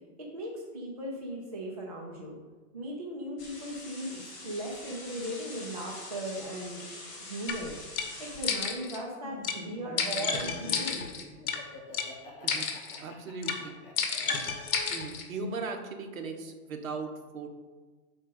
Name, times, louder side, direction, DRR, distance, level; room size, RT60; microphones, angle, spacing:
voice 1, 0.3-2.4 2.7-6.9 7.2-7.8 8.2-11.1, right 1 dB, 25° right, -4 dB, 0.4 m, -38 dB
sound 1, 3.4-8.6, left 2 dB, 20° left, 1.3 m, -45 dB
sound 2, 7.5-7.6 8.0-8.1 8.4-9.0 9.4-9.6 10.0-11.6 11.9-12.1 12.5-13.0 13.4-13.6 14.0-15.2, left 5 dB, 60° left, 1.2 m, -31 dB
Laughter, 9.2-15.2, left 2 dB, 35° left, 1.3 m, -47 dB
voice 2, 13.0-13.8 14.9-17.5, right 4 dB, 60° right, 4 dB, 1.1 m, -38 dB
6.4 x 4.3 x 5.3 m, 1.3 s
hypercardioid pair, 170°, 47 cm